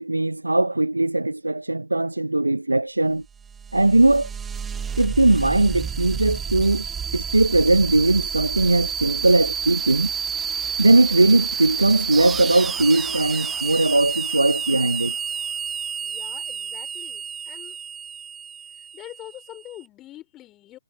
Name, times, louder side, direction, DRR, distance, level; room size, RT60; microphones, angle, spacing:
voice 1, 0.0-3.2 3.7-4.3 5.0-6.8 7.1-10.1 10.8-15.1, right 2 dB, 85° right, 0.9 m, -19 dB
sound 1, 3.3-19.7, right 7 dB, 10° right, 0.8 m, -30 dB
voice 2, 16.0-17.8 18.9-20.8, left 14 dB, 20° left, 4.4 m, -44 dB
figure-of-eight pair, 130°, 0 cm